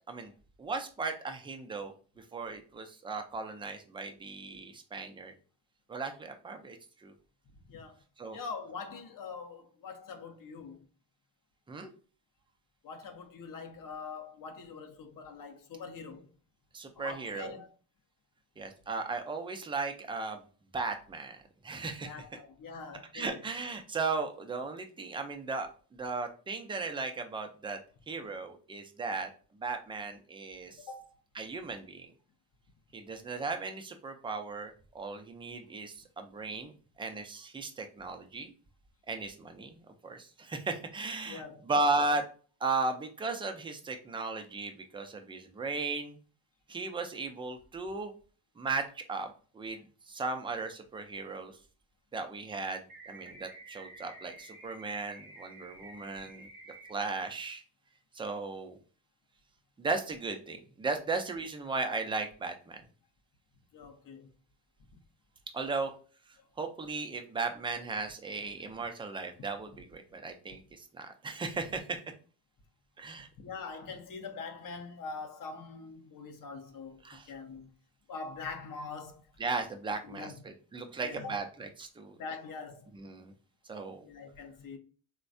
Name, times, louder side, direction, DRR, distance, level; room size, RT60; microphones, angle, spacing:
voice 1, 0.6-1.9 2.3-5.3 5.9-7.1 8.2-8.4 11.7-11.9 16.7-17.5 18.6-20.4 20.7-22.1 23.1-25.7 25.9-27.8 28.1-29.3 29.6-30.8 31.4-32.1 32.9-36.7 37.0-38.5 39.1-39.8 40.0-42.2 42.6-46.2 46.7-48.1 48.6-51.5 52.1-56.5 56.9-57.6 58.1-58.8 59.8-62.8 65.5-65.9 66.6-72.0 73.0-73.3 77.0-77.3 79.4-82.2 82.9-83.3 83.7-84.1, right 3 dB, 10° right, 0.3 m, -36 dB
voice 2, 7.7-8.0 8.3-10.8 12.8-16.3 17.0-17.7 22.0-23.4 30.9-31.1 41.3-41.7 63.7-64.3 66.4-66.5 73.4-77.7 78.1-79.2 79.9-80.4 81.0-81.4 82.1-82.9 84.0-84.8, left 4 dB, 40° left, 0.6 m, -43 dB
sound 1, 52.9-56.9, right 2 dB, 45° right, 0.9 m, -51 dB
3.2 x 2.2 x 2.5 m
supercardioid pair, 80°, 50 cm